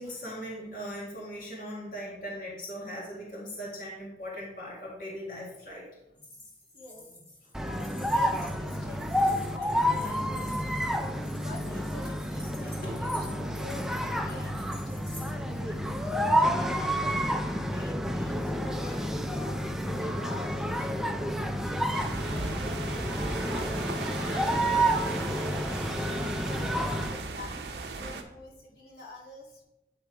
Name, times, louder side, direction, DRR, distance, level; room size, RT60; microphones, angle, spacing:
voice 1, 0.0-5.9 12.8-13.0 16.0-16.1 18.8-18.9 20.0-20.1, equal, 50° left, -5 dB, 1.7 m, -39 dB
sound 1, 6.2-15.3, left 1 dB, 20° left, 1.9 m, -50 dB
voice 2, 6.7-7.1 7.6-10.7 11.3-15.8 16.3-21.2 21.6-23.7 24.2-25.8 26.1-29.6, left 2 dB, 65° left, -5 dB, 1.8 m, -46 dB
sound 2, 7.5-27.2, equal, ahead, 0.3 m, -29 dB
sound 3, 21.9-28.2, right 3 dB, 65° right, 0.7 m, -37 dB
9.0 x 3.4 x 4.7 m, 0.92 s
head